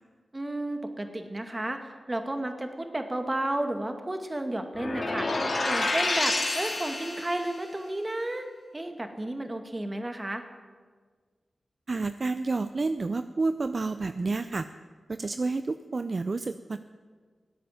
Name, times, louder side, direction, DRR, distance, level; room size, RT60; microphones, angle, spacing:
voice 1, 0.3-5.3 5.7-8.5 8.7-10.4, right 1 dB, 30° right, 6 dB, 2.0 m, -32 dB
sound 1, 4.7-7.6, left 2 dB, 65° left, 2.8 m, -29 dB
voice 2, 11.9-14.7 15.1-16.8, right 3 dB, 55° right, 11 dB, 0.5 m, -29 dB
16.0 x 8.6 x 9.2 m, 1.5 s
cardioid pair, 45°, 0 cm